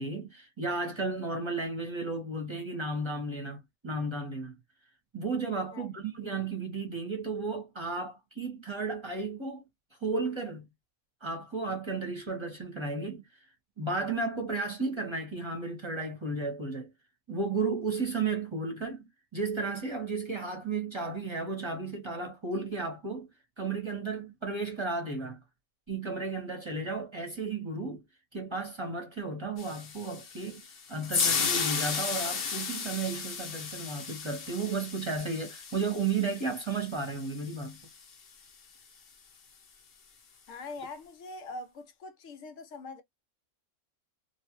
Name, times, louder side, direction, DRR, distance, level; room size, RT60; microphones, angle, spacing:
voice 1, 0.0-4.5 5.1-9.7 10.0-10.7 11.2-13.3 13.8-16.9 17.3-23.3 23.6-25.4 25.9-28.0 28.3-30.6 30.9-37.8, right 3 dB, 25° right, 0.8 m, -33 dB
sound 1, 29.6-37.9, left 5 dB, 55° left, 0.9 m, -34 dB
voice 2, 40.5-43.0, left 3 dB, 85° left, 1.1 m, -43 dB
2.9 x 2.3 x 2.9 m
omnidirectional pair, 1.3 m